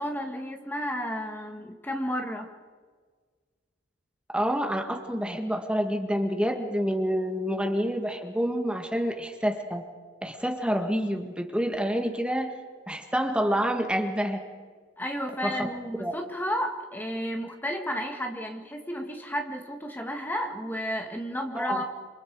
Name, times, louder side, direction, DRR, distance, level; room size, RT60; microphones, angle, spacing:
voice 1, 0.0-2.5 15.0-21.8, equal, 10° left, 3 dB, 1.8 m, -32 dB
voice 2, 4.3-9.8 10.2-12.6 12.9-14.4 15.4-15.7 16.0-16.1 21.5-21.8, equal, 5° right, 4 dB, 1.8 m, -28 dB
28.0 x 27.5 x 4.8 m, 1.5 s
head